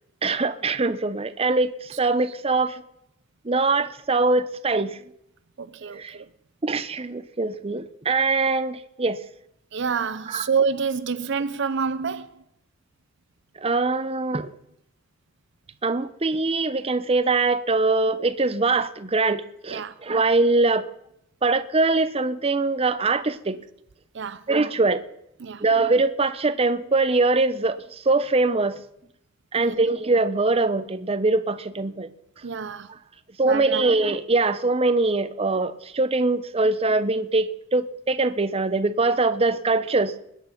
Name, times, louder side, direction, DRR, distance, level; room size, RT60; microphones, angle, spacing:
voice 1, 0.2-2.8 3.4-5.0 6.0-6.2 6.6-9.2 10.3-10.4 13.6-14.5 15.8-20.8 21.4-23.6 24.5-25.0 25.6-27.8 28.1-28.8 29.5-32.1 33.4-40.1, right 3 dB, 30° right, 0.8 m, -22 dB
voice 2, 5.6-6.3 9.7-12.4 19.7-20.0 24.1-24.4 25.4-25.6 29.5-29.8 32.4-32.9 33.4-33.8 36.6-36.7, right 5 dB, 60° right, 0.6 m, -28 dB
21.0 x 9.3 x 5.9 m
head